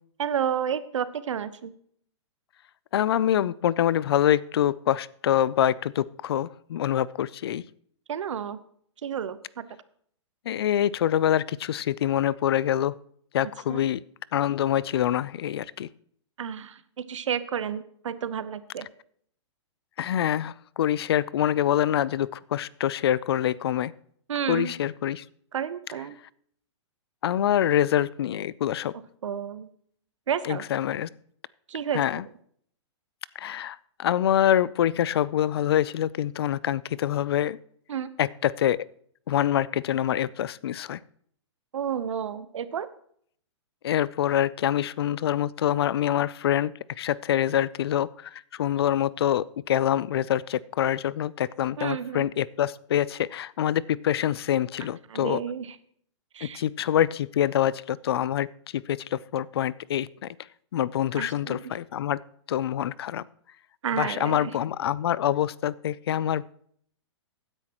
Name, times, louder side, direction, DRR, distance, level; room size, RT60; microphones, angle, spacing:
voice 1, 0.2-1.7 8.1-8.6 9.0-9.6 13.7-13.8 16.4-16.8 17.1-18.9 24.3-24.7 25.5-26.1 29.2-29.7 30.3-30.6 31.7-32.0 37.9-38.1 41.7-42.9 51.8-52.3 55.1-55.8 56.3-56.6 61.2-61.7 63.8-64.5, right 8 dB, 80° right, 14 dB, 0.9 m, -31 dB
voice 2, 2.9-7.6 10.5-12.9 13.3-14.0 14.3-15.9 20.0-23.9 24.5-25.2 27.2-28.9 30.4-31.1 31.9-32.2 33.4-37.6 38.2-38.8 39.3-41.0 43.8-46.7 47.0-55.4 56.4-58.5 58.7-60.3 60.7-62.2 62.5-63.2 64.0-66.5, left 11 dB, 55° left, 21 dB, 0.4 m, -25 dB
16.0 x 9.8 x 3.0 m, 0.63 s
hypercardioid pair, 165°, 16 cm